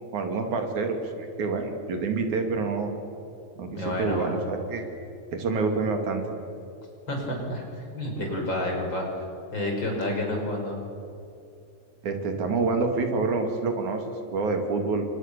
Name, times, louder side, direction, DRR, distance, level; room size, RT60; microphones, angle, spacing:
voice 1, 0.1-2.9 3.6-4.8 5.3-6.2 12.0-15.1, right 4 dB, 90° right, 4 dB, 4.1 m, -27 dB
voice 2, 3.7-4.4 7.1-9.2 9.5-10.8, left 1 dB, 40° left, 1 dB, 6.1 m, -29 dB
29.5 x 25.5 x 6.9 m, 2.6 s
omnidirectional pair, 3.3 m